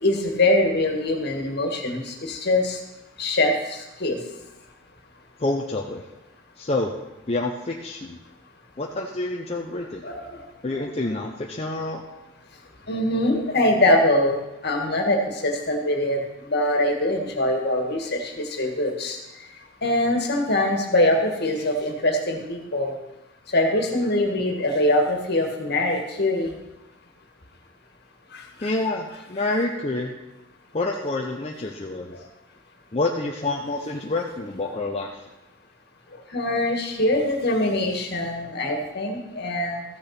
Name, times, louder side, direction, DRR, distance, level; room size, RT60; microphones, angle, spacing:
voice 1, 0.0-2.8 3.2-4.2 9.8-10.4 10.7-10.8 12.9-19.2 19.8-22.9 23.5-26.5 28.3-28.7 34.6-34.7 36.3-39.8, left 1 dB, 55° left, 3 dB, 1.8 m, -23 dB
voice 2, 5.4-6.0 6.6-6.9 7.3-8.2 8.8-10.0 10.6-12.0 28.6-30.1 30.7-32.2 32.9-35.2, left 2 dB, 30° left, 0 dB, 0.7 m, -27 dB
14.0 x 6.7 x 5.8 m, 0.97 s
head